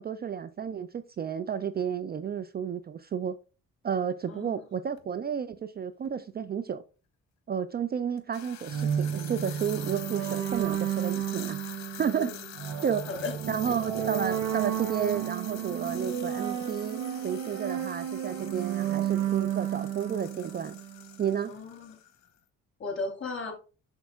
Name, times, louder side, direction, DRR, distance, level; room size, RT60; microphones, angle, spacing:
voice 1, 0.0-3.4 3.8-6.8 7.5-11.6 12.0-12.3 12.8-13.0 13.5-20.8 21.2-21.5, right 8 dB, 35° right, 0.4 m, -32 dB
voice 2, 4.3-4.6 12.2-12.4 13.1-13.3 13.7-13.8 21.5-22.0 22.8-23.5, left 3 dB, 40° left, 3.1 m, -36 dB
sound 1, 4.9-5.1 6.0-6.1 8.2-22.3, left 11 dB, 65° left, 1.0 m, -46 dB
sound 2, 8.7-21.2, right 10 dB, 85° right, 0.8 m, -32 dB
6.8 x 6.2 x 2.4 m
cardioid pair, 90°, 30 cm